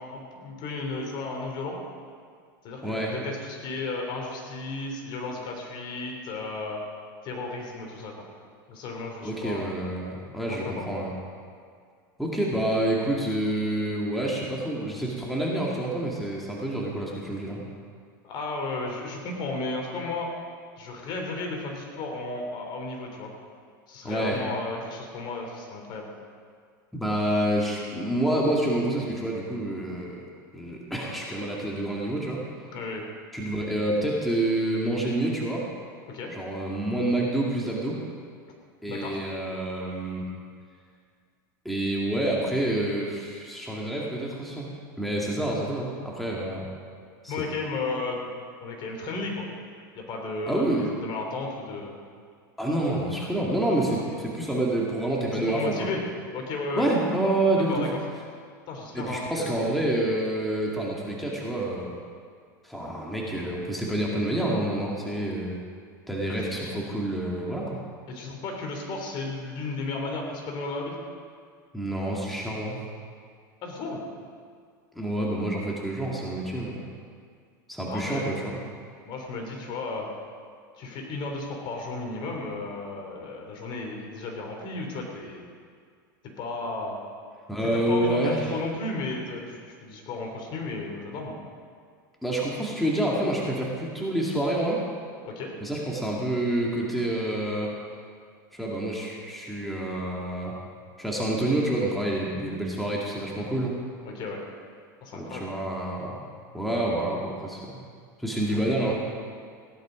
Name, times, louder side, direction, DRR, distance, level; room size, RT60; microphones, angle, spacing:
voice 1, 0.0-1.8 2.6-6.8 7.2-8.2 8.7-9.7 10.5-10.9 18.2-20.3 20.8-23.3 23.9-26.1 32.7-33.0 36.1-36.3 38.9-39.2 47.3-48.3 48.6-49.5 49.9-52.0 54.1-54.2 55.3-56.0 56.3-56.9 57.7-58.0 58.7-59.7 68.1-70.9 73.6-74.0 77.9-78.6 79.0-80.1 80.8-85.4 86.2-87.0 87.6-91.4 95.2-95.5 104.0-104.4 105.0-105.5 108.5-108.9, left 3 dB, 45° left, 1 dB, 3.4 m, -34 dB
voice 2, 2.8-3.1 9.2-11.1 12.2-17.6 24.0-24.4 26.9-30.2 30.5-32.4 33.3-35.6 36.3-38.0 38.8-40.3 41.6-44.7 45.0-46.7 47.2-47.4 50.5-50.9 52.6-55.9 56.8-57.9 58.9-62.0 62.6-65.6 66.1-67.8 71.7-72.8 75.0-76.8 77.7-78.6 87.5-88.5 92.2-94.8 95.6-97.7 98.5-100.6 101.0-103.8 105.1-106.2 106.5-107.8 108.2-108.9, right 1 dB, ahead, -4 dB, 2.3 m, -28 dB
16.5 x 10.5 x 5.2 m, 2.1 s
supercardioid pair, 120°, 11 cm